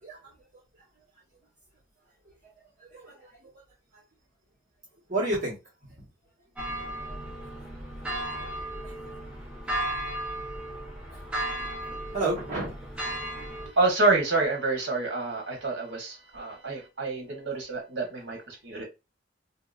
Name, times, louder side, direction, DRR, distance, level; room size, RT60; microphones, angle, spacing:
voice 1, 2.8-3.5 5.1-5.5 8.7-8.9 12.1-12.8 13.4-13.7 18.7-18.8, right 2 dB, 40° right, -7 dB, 1.5 m, -31 dB
sound 1, 6.6-13.7, right 1 dB, 5° right, 1.0 m, -35 dB
voice 2, 13.7-18.8, right 3 dB, 70° right, 0 dB, 1.2 m, -27 dB
2.9 x 2.8 x 2.5 m, 0.26 s
head